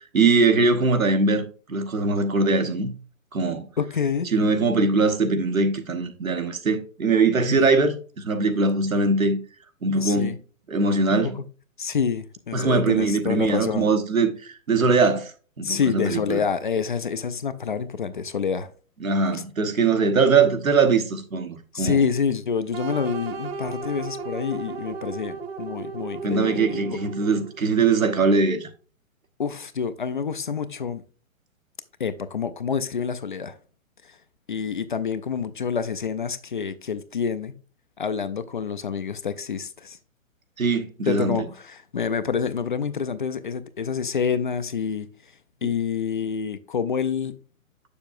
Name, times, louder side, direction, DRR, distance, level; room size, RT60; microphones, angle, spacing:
voice 1, 0.1-1.4 1.7-2.9 3.3-3.7 4.3-9.4 9.8-10.3 10.7-11.4 12.5-15.3 15.6-16.4 19.0-22.0 26.2-28.7 40.6-41.4, right 4 dB, 80° right, 1.2 m, -21 dB
voice 2, 3.8-4.3 7.5-7.6 10.0-10.4 11.2-11.5 11.8-13.9 15.6-18.7 19.3-19.4 21.7-26.8 29.4-31.0 32.0-33.6 34.0-34.2 34.5-37.6 38.0-40.0 41.1-45.1 45.6-47.3, left 6 dB, 40° left, 0.4 m, -27 dB
sound 1, 22.7-27.7, right 4 dB, 50° right, 1.1 m, -34 dB
6.9 x 6.9 x 2.5 m
figure-of-eight pair, 125°, 41 cm